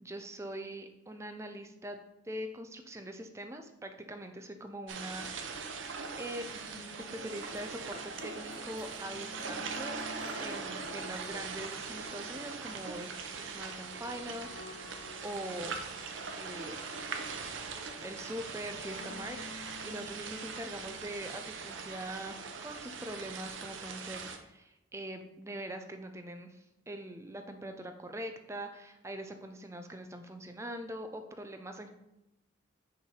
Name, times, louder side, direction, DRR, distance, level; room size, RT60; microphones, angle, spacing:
voice 1, 0.0-5.8 6.2-6.4 7.0-10.0 10.3-15.7 16.3-16.8 18.0-31.9, right 1 dB, 15° right, 6 dB, 0.5 m, -43 dB
sound 1, 4.9-24.4, right 5 dB, 85° right, 0.7 m, -41 dB
sound 2, 6.1-6.2 7.0-22.3 23.2-23.3 23.5-23.6, left 3 dB, 65° left, 0.5 m, -54 dB
sound 3, 6.5-11.9, equal, 50° left, 1.2 m, -54 dB
5.8 x 3.3 x 5.6 m, 0.90 s
head